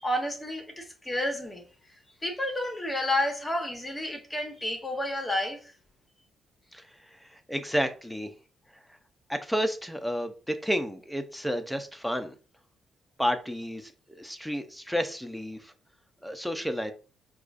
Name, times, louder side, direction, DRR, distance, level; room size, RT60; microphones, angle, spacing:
voice 1, 0.0-1.6 2.2-5.6, left 1 dB, 15° left, 0.9 m, -30 dB
voice 2, 7.2-8.3 9.3-12.3 13.2-15.7 16.2-16.9, equal, ahead, 0.5 m, -31 dB
4.7 x 2.3 x 2.5 m
cardioid pair, 90°, 0 cm